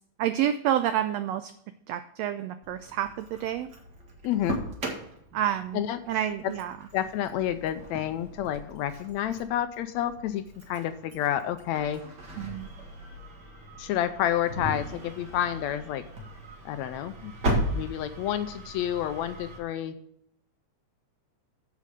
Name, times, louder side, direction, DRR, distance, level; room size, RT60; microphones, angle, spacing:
voice 1, 0.2-1.5 1.9-3.7 5.3-5.8 6.1-6.8 12.4-12.7, right 11 dB, 85° right, 11 dB, 1.4 m, -28 dB
Engine starting, 2.6-19.6, right 1 dB, 40° right, 2.2 m, -37 dB
voice 2, 4.2-4.6 5.7-6.0 6.4-6.5 6.9-12.0 13.8-16.0 16.6-17.3 17.7-19.9, left 11 dB, 80° left, 11 dB, 1.7 m, -29 dB
8.3 x 7.7 x 5.0 m, 0.73 s
omnidirectional pair, 3.5 m